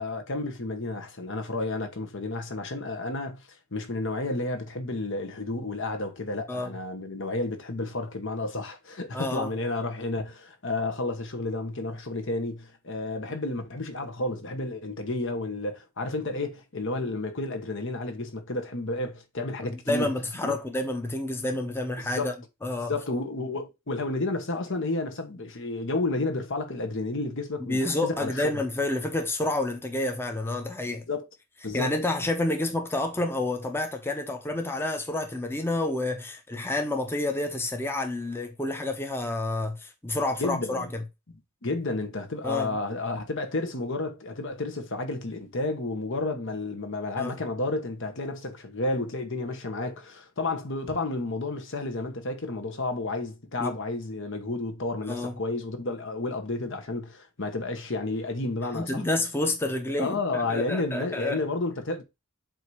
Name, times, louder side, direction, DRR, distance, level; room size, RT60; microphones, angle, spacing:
voice 1, 0.0-3.4 3.7-20.1 20.4-20.5 22.0-22.3 22.9-28.6 30.8-31.2 31.6-32.0 40.4-40.9 41.3-41.4 41.6-59.0 60.0-62.0, left 2 dB, 60° left, 1.3 m, -31 dB
voice 2, 9.1-9.5 19.7-22.3 22.6-22.9 27.6-31.0 31.7-41.0 42.4-42.8 47.2-47.3 53.6-53.7 55.1-55.3 58.7-61.4, left 2 dB, 10° left, 0.8 m, -29 dB
7.6 x 2.8 x 4.7 m
head